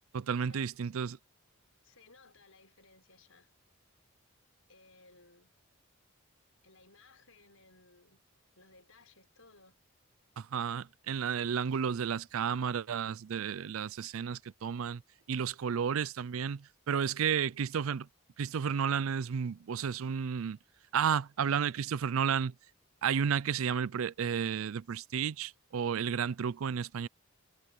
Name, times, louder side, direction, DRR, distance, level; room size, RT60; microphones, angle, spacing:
voice 1, 0.1-1.2 10.4-15.0 15.3-18.1 18.4-20.6 20.9-22.5 23.0-27.1, right 7 dB, 80° right, 0.4 m, -32 dB
voice 2, 1.8-3.5 4.7-5.5 6.6-8.2 8.6-9.8 11.3-11.7 17.3-17.5, left 3 dB, 75° left, 6.1 m, -60 dB
head